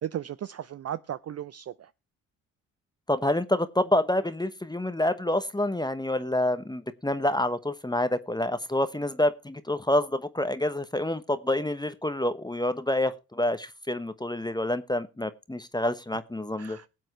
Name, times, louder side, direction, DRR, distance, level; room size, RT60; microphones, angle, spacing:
voice 1, 0.0-1.9 16.6-16.9, right 10 dB, 35° right, 0.5 m, -36 dB
voice 2, 3.1-16.8, left 1 dB, 10° left, 1.1 m, -27 dB
20.0 x 7.7 x 3.1 m
hypercardioid pair, 50°, 43 cm